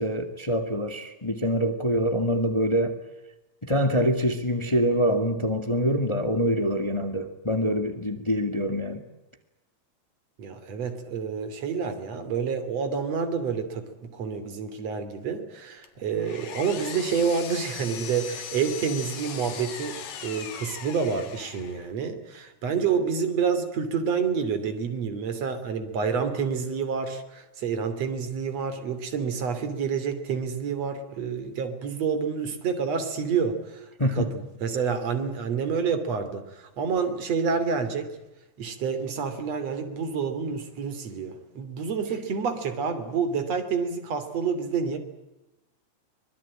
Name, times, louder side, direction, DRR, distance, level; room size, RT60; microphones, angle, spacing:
voice 1, 0.0-3.0 3.6-9.0 34.0-34.2, equal, 10° left, 7 dB, 1.7 m, -25 dB
voice 2, 10.4-20.0 20.2-38.1 38.6-45.0, right 6 dB, 60° right, 9 dB, 4.0 m, -28 dB
Power tool, 15.8-21.9, left 8 dB, 70° left, 3.3 m, -39 dB
25.5 x 21.5 x 8.8 m, 0.98 s
omnidirectional pair, 3.4 m